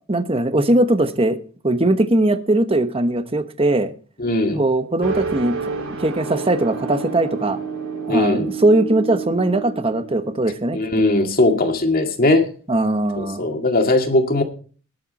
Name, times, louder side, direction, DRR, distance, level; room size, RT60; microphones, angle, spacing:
voice 1, 0.1-1.4 1.6-3.9 4.5-5.7 6.0-7.6 8.1-10.8 12.7-13.5, right 1 dB, 30° right, 9 dB, 1.1 m, -20 dB
voice 2, 4.2-4.6 8.1-8.5 10.7-12.5 13.2-14.4, left 2 dB, 45° left, 5 dB, 2.1 m, -19 dB
sound 1, 5.0-11.4, right 5 dB, 85° right, 4.3 m, -30 dB
19.5 x 7.5 x 4.2 m, 0.40 s
head